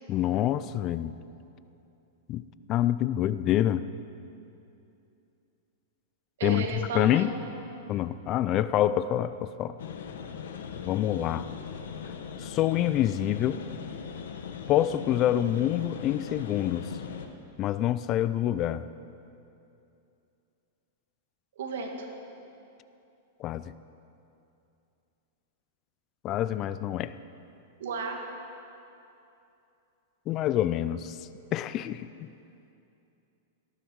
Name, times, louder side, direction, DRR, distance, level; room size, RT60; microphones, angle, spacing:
voice 1, 0.1-1.2 2.3-2.4 2.7-3.8 6.4-7.3 7.9-9.8 10.8-11.5 12.4-13.6 14.7-16.9 17.6-18.9 23.4-23.6 26.2-27.1 30.3-31.2 31.5-32.3, left 12 dB, 30° left, 15 dB, 0.4 m, -26 dB
voice 2, 6.4-7.3 21.6-22.1 27.8-28.3, right 4 dB, 80° right, 2 dB, 2.4 m, -33 dB
sound 1, 9.8-17.3, left 7 dB, 80° left, 1.3 m, -39 dB
18.0 x 14.0 x 4.8 m, 2.7 s
supercardioid pair, 150°, 0 cm